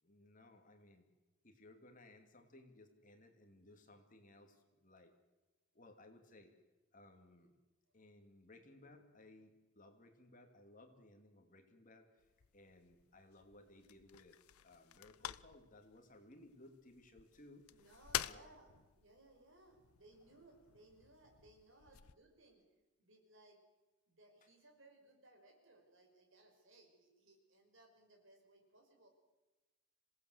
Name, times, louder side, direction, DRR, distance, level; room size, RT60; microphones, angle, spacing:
voice 1, 0.0-1.1 1.4-5.1 5.7-6.5 6.9-7.5 7.9-12.3 12.5-17.6 18.2-18.5, left 2 dB, 35° left, 5 dB, 2.8 m, -61 dB
sound 1, 12.2-22.1, left 11 dB, 85° left, 0.7 m, -49 dB
voice 2, 17.7-22.6 23.0-23.6 24.1-29.1, right 2 dB, 60° right, 3 dB, 5.5 m, -65 dB
26.5 x 17.5 x 8.1 m, 1.1 s
head